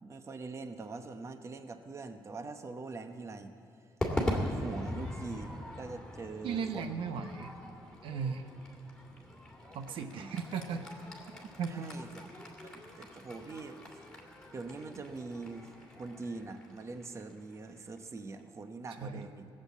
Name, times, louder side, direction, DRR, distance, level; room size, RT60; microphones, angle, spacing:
voice 1, 0.0-3.5 4.2-7.2 10.1-10.4 11.7-12.3 12.6-13.8 14.5-19.5, right 3 dB, 35° right, 8 dB, 0.9 m, -43 dB
Crowd / Fireworks, 4.0-18.4, left 1 dB, 10° left, 2.4 m, -41 dB
voice 2, 6.4-7.5 8.0-8.5 9.7-10.9 11.6-11.9 19.0-19.3, right 6 dB, 75° right, 7 dB, 0.8 m, -36 dB
17.0 x 7.5 x 8.4 m, 2.9 s
cardioid pair, 105°, 9 cm